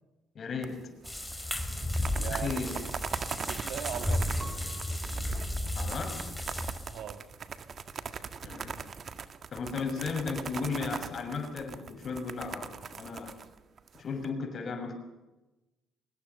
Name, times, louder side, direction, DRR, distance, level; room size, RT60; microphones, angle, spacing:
voice 1, 0.3-0.9 2.1-2.8 5.7-6.3 8.4-8.8 9.5-13.4 13.9-14.9, left 5 dB, 50° left, 6.5 m, -35 dB
sound 1, 0.6-1.3 1.8-14.3, right 6 dB, 50° right, 1.8 m, -40 dB
sound 2, 1.0-7.0, left 1 dB, 5° left, 5.1 m, -33 dB
voice 2, 2.1-2.9 3.4-4.5 6.9-7.2, right 9 dB, 70° right, 2.1 m, -40 dB
Piano, 4.4-7.2 7.8-8.5, right 1 dB, 20° right, 4.5 m, -54 dB
23.5 x 20.5 x 7.0 m
supercardioid pair, 60°, 0 cm